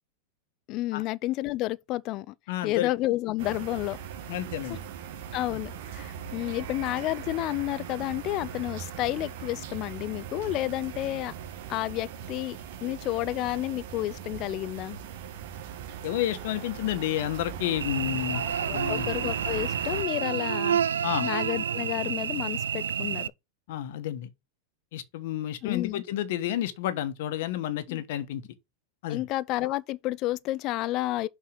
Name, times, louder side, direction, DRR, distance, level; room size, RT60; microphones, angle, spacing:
voice 1, 0.7-2.3 2.6-4.0 4.7-4.8 5.3-11.3 11.7-15.0 18.4-20.8 21.2-23.3 25.6-26.0 27.9-28.0 29.1-31.3, left 16 dB, 45° left, 0.5 m, -31 dB
voice 2, 2.5-2.9 4.3-4.9 5.5-5.6 16.0-18.4 18.7-19.1 21.0-21.3 23.7-24.3 24.9-28.4 29.0-29.2, left 12 dB, 65° left, 1.2 m, -30 dB
sound 1, 3.4-20.0, right 8 dB, 65° right, 1.7 m, -40 dB
Cricket / Buzz, 17.8-23.3, right 8 dB, 90° right, 0.4 m, -29 dB
5.8 x 4.7 x 6.4 m
hypercardioid pair, 110°, 0 cm